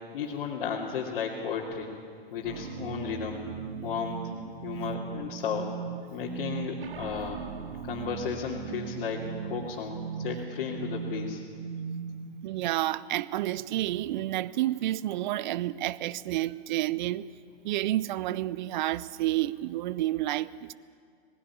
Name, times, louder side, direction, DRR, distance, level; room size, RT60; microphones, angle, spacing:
voice 1, 0.1-1.9 2.3-3.5 3.8-4.2 4.6-5.7 6.1-7.4 7.9-11.4, left 6 dB, 60° left, 2.8 m, -34 dB
sound 1, 2.4-12.4, right 6 dB, 65° right, 1.6 m, -38 dB
voice 2, 12.4-17.3 17.6-20.7, right 14 dB, 50° right, 0.7 m, -30 dB
19.0 x 16.0 x 9.9 m
hypercardioid pair, 115°, 30 cm